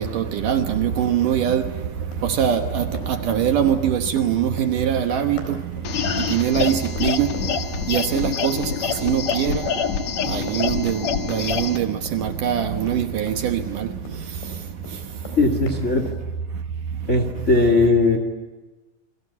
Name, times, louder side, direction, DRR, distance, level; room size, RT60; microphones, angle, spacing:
voice 1, 0.0-1.7 2.2-5.7 6.0-7.4 7.9-9.7 10.3-14.3, right 9 dB, 65° right, 2.4 m, -23 dB
Run, 2.1-14.5 14.8-16.2, left 2 dB, 80° left, 6.2 m, -40 dB
sound 1, 5.8-11.8, left 7 dB, 55° left, 2.4 m, -26 dB
voice 2, 15.4-16.0 17.1-18.2, left 3 dB, 25° left, 1.7 m, -18 dB
30.0 x 22.5 x 8.3 m
omnidirectional pair, 4.5 m